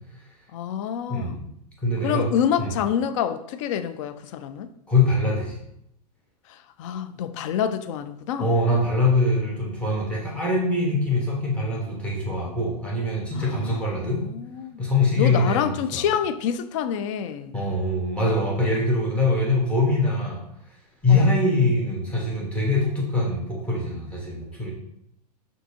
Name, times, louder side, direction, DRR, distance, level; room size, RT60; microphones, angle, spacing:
voice 1, 0.5-1.4 2.0-4.7 6.5-8.5 13.3-14.8 15.2-17.5 21.1-21.3, left 8 dB, 50° left, 11 dB, 0.4 m, -27 dB
voice 2, 1.1-1.4 1.8-2.3 2.6-2.7 4.9-5.6 8.4-14.2 14.8-16.0 17.5-20.4 21.0-24.7, left 2 dB, 5° left, -4 dB, 1.3 m, -23 dB
5.9 x 2.7 x 2.8 m, 0.78 s
hypercardioid pair, 100°, 21 cm